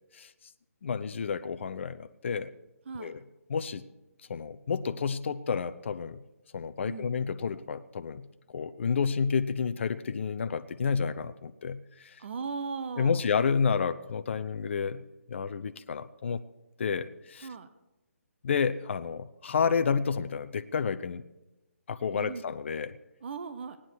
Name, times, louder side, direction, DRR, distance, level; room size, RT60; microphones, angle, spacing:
voice 1, 0.8-2.5 3.0-3.2 3.5-3.8 4.3-6.2 6.5-8.2 8.5-12.2 13.0-15.0 15.3-16.4 16.8-17.5 18.4-21.2 21.9-22.9, left 6 dB, 50° left, 11 dB, 0.6 m, -30 dB
voice 2, 6.9-7.2 12.2-13.2 17.4-17.7 22.1-22.4 23.2-23.8, right 5 dB, 50° right, 11 dB, 0.8 m, -37 dB
17.5 x 10.0 x 4.7 m, 1.0 s
figure-of-eight pair, 150°, 8 cm